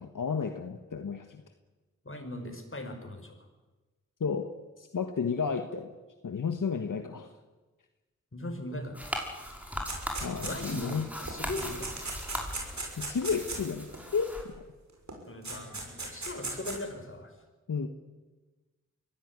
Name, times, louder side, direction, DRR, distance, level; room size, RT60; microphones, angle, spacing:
voice 1, 0.0-1.4 4.2-4.5 4.8-5.9 6.2-7.3 10.2-11.1 13.0-14.3 17.7-17.9, left 5 dB, 80° left, 7 dB, 1.5 m, -32 dB
voice 2, 2.1-3.4 8.3-9.1 10.4-12.1 15.3-17.3, left 1 dB, 40° left, 5 dB, 5.4 m, -39 dB
sound 1, 8.9-14.4, equal, 5° right, 5.8 m, -39 dB
sound 2, 9.9-10.9 11.3-14.0 15.1-15.2 15.4-16.8, right 3 dB, 60° right, 6.6 m, -37 dB
23.0 x 16.5 x 9.7 m, 1.2 s
cardioid pair, 45°, 31 cm